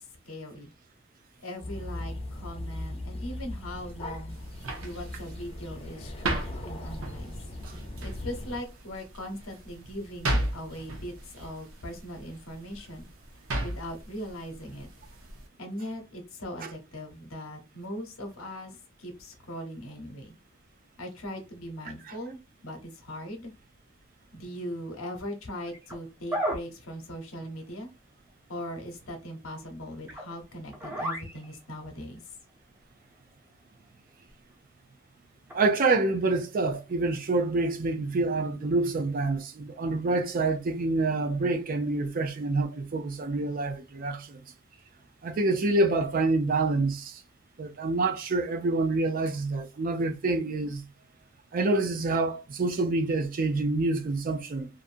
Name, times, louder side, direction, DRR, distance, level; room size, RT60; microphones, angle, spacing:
voice 1, 0.3-0.7 1.4-4.4 4.8-7.3 8.0-13.1 13.6-14.9 15.6-18.7 19.0-20.4 21.0-23.5 24.3-27.9 28.5-32.2, equal, 85° left, 0.9 m, -39 dB
sound 1, 1.6-8.6, left 1 dB, 30° left, 0.6 m, -39 dB
sound 2, 4.3-15.5, right 1 dB, 80° right, 0.7 m, -36 dB
sound 3, 25.7-26.0 26.3-26.6 30.1-30.3 30.7-31.9 32.5-32.6 34.3-34.4 35.5-35.6 36.8-36.9, equal, 10° right, 0.7 m, -32 dB
voice 2, 35.5-44.4 45.2-47.1 47.6-50.8 51.5-54.7, right 2 dB, 45° right, 0.4 m, -27 dB
2.5 x 2.5 x 2.5 m
head